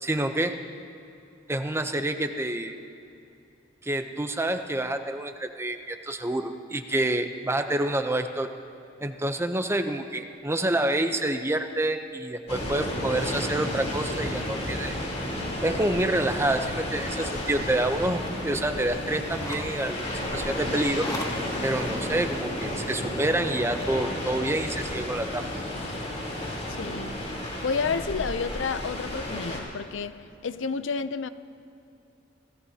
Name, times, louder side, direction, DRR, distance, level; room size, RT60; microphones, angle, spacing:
voice 1, 0.0-0.6 1.5-2.7 3.8-8.6 9.0-14.9 15.6-21.1 21.6-25.4, right 1 dB, 15° right, 7 dB, 0.7 m, -28 dB
sound 1, 12.5-29.6, left 1 dB, 35° left, 3.5 m, -32 dB
sound 2, 18.1-24.0, left 1 dB, 20° left, 1.4 m, -42 dB
voice 2, 26.8-27.2 27.6-30.2 30.4-31.3, left 5 dB, 75° left, 12 dB, 0.5 m, -30 dB
28.5 x 16.5 x 2.8 m, 2.7 s
head